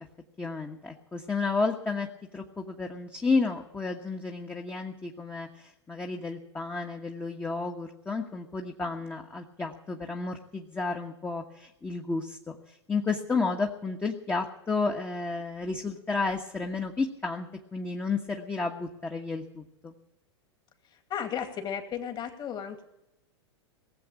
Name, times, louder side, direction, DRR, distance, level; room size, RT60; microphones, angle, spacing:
voice 1, 0.4-2.1 2.3-17.5 17.7-19.9, left 4 dB, 15° left, 2 dB, 1.3 m, -32 dB
voice 2, 20.8-22.8, left 8 dB, 30° left, 6 dB, 2.4 m, -35 dB
18.5 x 7.8 x 8.6 m, 0.87 s
hypercardioid pair, 100°, 15 cm